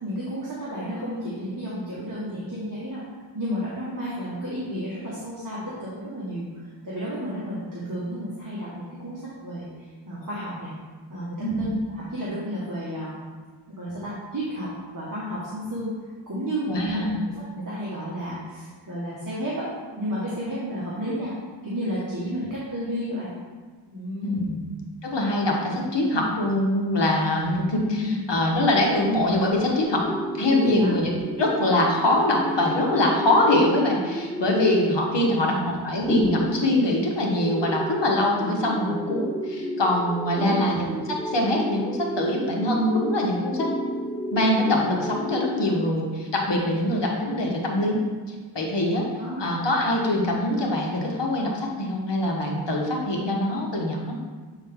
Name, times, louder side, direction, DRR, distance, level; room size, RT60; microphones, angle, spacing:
voice 1, 0.0-3.0 3.3-6.5 6.8-10.7 11.1-13.1 13.7-15.9 16.3-17.0 17.5-19.7 20.0-21.3 21.6-23.3 23.9-24.6 27.9-28.2 30.5-30.9 35.2-35.7 40.3-40.6 49.2-49.4, equal, 40° right, -9 dB, 1.6 m, -31 dB
voice 2, 11.4-11.7 16.7-17.2 24.2-24.6 25.0-30.0 30.4-43.7 44.3-48.0 48.5-49.0 49.4-54.2, left 1 dB, 65° left, -1 dB, 1.3 m, -23 dB
sound 1, 29.8-45.9, equal, ahead, 0.5 m, -32 dB
8.0 x 4.0 x 3.6 m, 1.5 s
wide cardioid pair, 65°, 46 cm